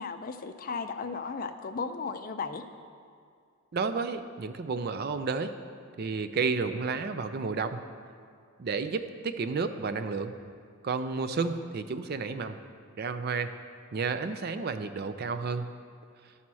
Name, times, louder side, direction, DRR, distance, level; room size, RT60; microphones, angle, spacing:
voice 1, 0.0-2.6, left 5 dB, 40° left, 8 dB, 0.4 m, -35 dB
voice 2, 3.7-5.5 6.0-7.8 8.6-10.3 10.8-12.6 13.0-13.5 13.9-15.6, right 4 dB, 45° right, 10 dB, 0.4 m, -31 dB
12.5 x 4.2 x 6.1 m, 2.2 s
head